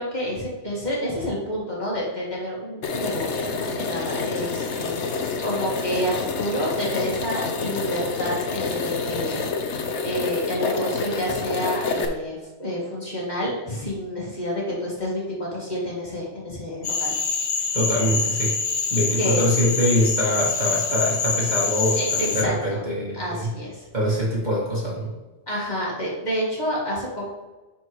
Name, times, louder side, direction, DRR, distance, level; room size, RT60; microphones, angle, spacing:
voice 1, 0.0-17.1 19.2-19.5 22.0-22.1 22.4-22.9 23.1-23.9 25.5-27.3, equal, 40° left, -5 dB, 2.1 m, -29 dB
sound 1, 2.8-12.1, left 4 dB, 80° left, 1.1 m, -28 dB
Cricket / Frog, 16.8-22.4, left 4 dB, 55° left, 0.9 m, -25 dB
voice 2, 17.7-18.5 18.9-23.5 23.9-25.1, equal, 40° right, -5 dB, 2.1 m, -24 dB
10.0 x 4.6 x 3.1 m, 1.2 s
omnidirectional pair, 1.2 m